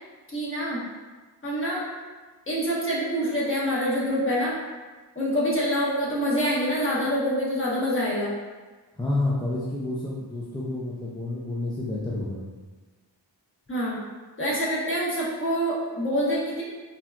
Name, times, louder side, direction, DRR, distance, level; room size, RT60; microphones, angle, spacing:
voice 1, 0.3-0.8 1.4-1.8 2.5-4.6 5.1-8.3 13.7-14.0 14.4-16.6, equal, 25° left, -7 dB, 1.1 m, -26 dB
voice 2, 9.0-12.4, left 2 dB, 10° left, -6 dB, 0.4 m, -29 dB
3.9 x 2.3 x 2.2 m, 1.3 s
wide cardioid pair, 70°, 45 cm